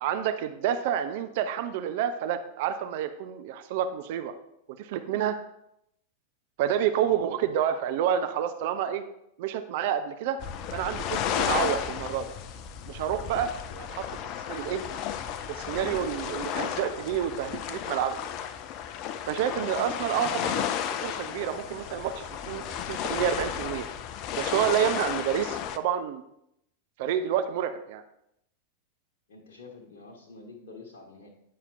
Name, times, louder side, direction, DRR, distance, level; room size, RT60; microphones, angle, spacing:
voice 1, 0.0-4.3 4.8-5.4 6.6-9.1 9.4-10.4 10.7-12.3 12.9-13.5 14.5-14.8 15.5-18.2 19.3-20.7 21.0-23.9 24.4-26.2 27.0-28.0, right 9 dB, 50° right, 9 dB, 0.4 m, -29 dB
voice 2, 6.7-7.2 13.6-13.8 19.9-20.0 29.3-31.3, left 3 dB, 55° left, -1 dB, 1.1 m, -48 dB
sound 1, 10.4-25.8, left 9 dB, 40° left, 0.4 m, -33 dB
9.2 x 5.6 x 2.5 m, 0.79 s
figure-of-eight pair, 90°, 0 cm